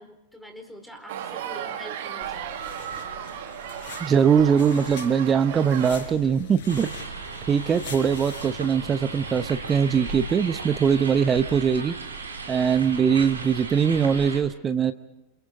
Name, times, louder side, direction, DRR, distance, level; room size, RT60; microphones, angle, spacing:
voice 1, 0.0-2.9, equal, ahead, 6 dB, 4.5 m, -44 dB
sound 1, 1.1-6.1, right 9 dB, 55° right, 2.2 m, -35 dB
sound 2, 2.2-10.8, left 4 dB, 50° left, 5.7 m, -42 dB
voice 2, 4.0-7.0 7.5-11.9 12.5-14.9, right 7 dB, 20° right, 11 dB, 1.0 m, -21 dB
sound 3, 6.7-14.4, right 4 dB, 75° right, 3.9 m, -36 dB
28.0 x 28.0 x 3.9 m, 0.90 s
figure-of-eight pair, 90°, 0 cm